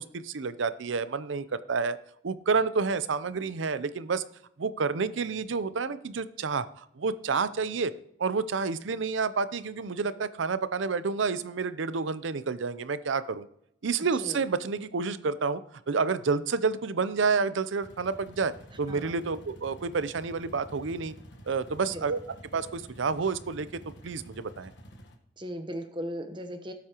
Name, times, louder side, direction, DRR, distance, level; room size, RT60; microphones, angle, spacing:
voice 1, 0.0-2.0 2.2-4.2 4.6-7.9 8.2-13.5 13.8-15.6 15.9-18.5 18.8-21.1 21.5-22.2 22.5-23.7 24.0-24.7, right 4 dB, 80° right, 14 dB, 0.6 m, -29 dB
sound 1, 17.8-25.1, equal, 65° left, 1.3 m, -49 dB
voice 2, 25.4-26.7, equal, 25° right, 8 dB, 0.9 m, -37 dB
17.5 x 8.3 x 3.0 m, 0.75 s
head